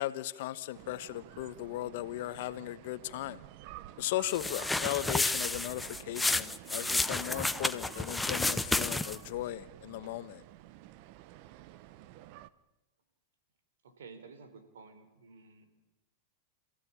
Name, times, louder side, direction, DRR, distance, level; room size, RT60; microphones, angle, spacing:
voice 1, 0.0-3.4 4.0-10.4, left 15 dB, 65° left, 14 dB, 1.2 m, -37 dB
sound 1, 0.7-12.5, right 14 dB, 50° right, 1.0 m, -51 dB
sound 2, 4.3-9.3, left 2 dB, 5° left, 0.8 m, -31 dB
voice 2, 13.8-15.7, right 5 dB, 90° right, 9 dB, 4.0 m, -52 dB
27.0 x 16.0 x 8.8 m, 1.0 s
supercardioid pair, 130°, 0 cm